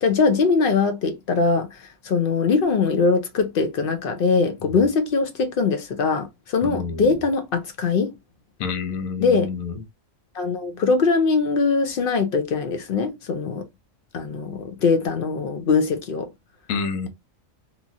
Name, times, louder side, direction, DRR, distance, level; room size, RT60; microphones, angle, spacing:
voice 1, 0.0-8.1 9.2-9.5 10.3-13.6 14.1-16.3, left 4 dB, 60° left, 0.6 m, -22 dB
voice 2, 6.6-7.2 8.6-9.8 16.7-17.1, left 5 dB, 90° left, 1.1 m, -28 dB
3.0 x 2.4 x 2.5 m
omnidirectional pair, 1.4 m